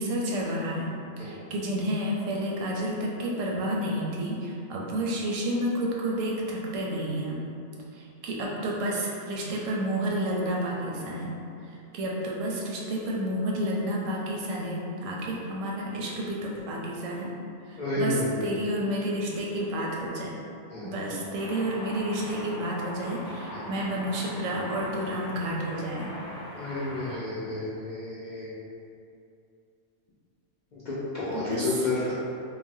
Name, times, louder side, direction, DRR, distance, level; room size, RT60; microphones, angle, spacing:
voice 1, 0.0-7.4 7.9-11.4 11.7-17.3 17.7-20.4 20.8-26.1 31.3-31.6, right 1 dB, 85° right, -3 dB, 0.9 m, -30 dB
voice 2, 17.8-18.5 20.7-21.1 23.5-23.6 26.5-28.5 30.7-32.1, left 2 dB, 60° left, -10 dB, 0.5 m, -31 dB
sound 1, 21.4-27.2, left 1 dB, 80° left, 0.9 m, -41 dB
3.3 x 2.0 x 2.6 m, 2.6 s
omnidirectional pair, 1.3 m